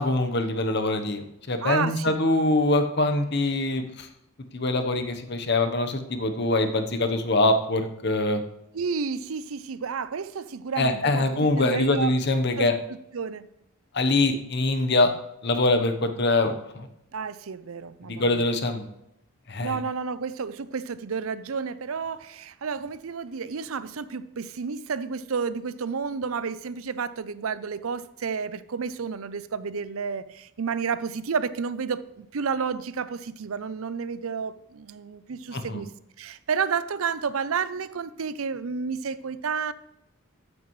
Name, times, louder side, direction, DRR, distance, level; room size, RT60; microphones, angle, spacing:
voice 1, 0.0-4.1 4.5-8.4 10.8-12.7 13.9-15.1 15.4-16.9 18.1-18.8 19.5-19.8 35.5-35.8, left 2 dB, 50° left, 7 dB, 1.0 m, -24 dB
voice 2, 1.6-2.2 8.7-12.1 12.6-12.7 13.1-13.4 17.1-18.4 19.6-35.9 36.2-39.7, right 5 dB, 80° right, 15 dB, 0.6 m, -31 dB
13.5 x 9.7 x 3.2 m, 0.83 s
head